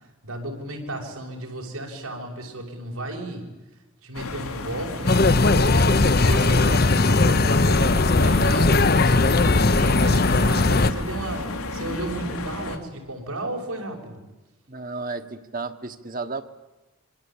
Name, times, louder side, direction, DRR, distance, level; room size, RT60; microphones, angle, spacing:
voice 1, 0.2-3.5 4.0-14.2, right 2 dB, 90° right, 1 dB, 6.2 m, -34 dB
sound 1, 4.1-12.8, left 2 dB, 85° left, 3.0 m, -32 dB
sound 2, 5.1-10.9, left 3 dB, 45° left, 0.9 m, -18 dB
voice 2, 14.7-16.4, right 3 dB, 40° right, 7 dB, 1.4 m, -33 dB
26.0 x 25.0 x 8.8 m, 1.1 s
head